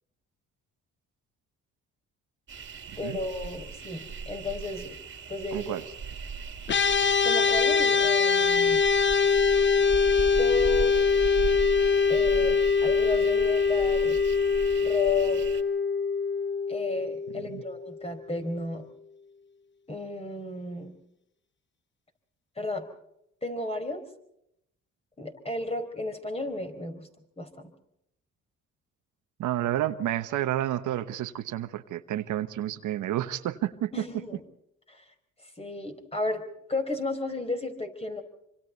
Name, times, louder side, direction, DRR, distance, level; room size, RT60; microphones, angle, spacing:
sound 1, 2.5-15.6, right 5 dB, 40° right, 2.5 m, -38 dB
voice 1, 3.0-5.0 5.3-5.7 7.2-8.8 10.4-10.9 12.1-14.2 14.8-15.4 16.7-18.9 19.9-20.9 22.6-22.9 23.4-24.0 25.2-27.1 27.4-27.7 33.9-34.4 34.9-35.0 35.6-38.2, left 2 dB, 20° left, 6 dB, 4.6 m, -33 dB
voice 2, 5.5-5.8 17.4-17.6 29.4-34.0, right 12 dB, 80° right, 9 dB, 1.2 m, -30 dB
sound 2, 6.7-18.1, left 5 dB, 40° left, 0.8 m, -23 dB
26.5 x 25.5 x 4.1 m, 0.77 s
cardioid pair, 90°, 30 cm